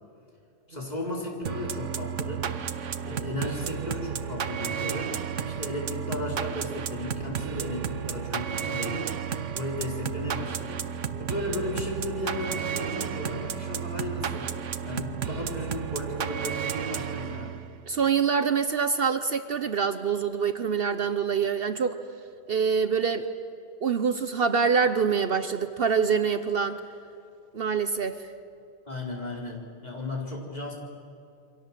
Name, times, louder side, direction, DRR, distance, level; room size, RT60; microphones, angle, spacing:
voice 1, 0.7-2.5 3.0-5.1 5.5-9.1 9.5-10.8 11.2-14.5 14.8-17.5 28.9-30.7, left 1 dB, 35° left, -2 dB, 4.5 m, -35 dB
sound 1, 1.5-17.8, right 8 dB, 90° right, 1.3 m, -32 dB
voice 2, 17.9-22.0 22.5-23.3 23.8-26.8 27.5-28.3, right 6 dB, 55° right, 10 dB, 1.0 m, -25 dB
28.5 x 24.0 x 7.5 m, 2.5 s
omnidirectional pair, 1.2 m